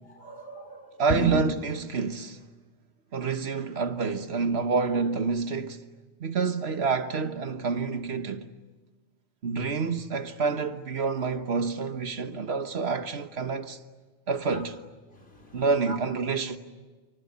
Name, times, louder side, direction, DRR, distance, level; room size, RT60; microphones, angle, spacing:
voice 1, 0.1-1.4 15.1-16.0, equal, 65° left, 3.7 m, -34 dB
voice 2, 1.0-2.4 3.1-5.8 6.2-8.5 9.4-13.8 14.3-14.8 15.5-16.6, right 4 dB, 70° right, 1.5 m, -28 dB
28.5 x 25.0 x 8.2 m
omnidirectional pair, 1.1 m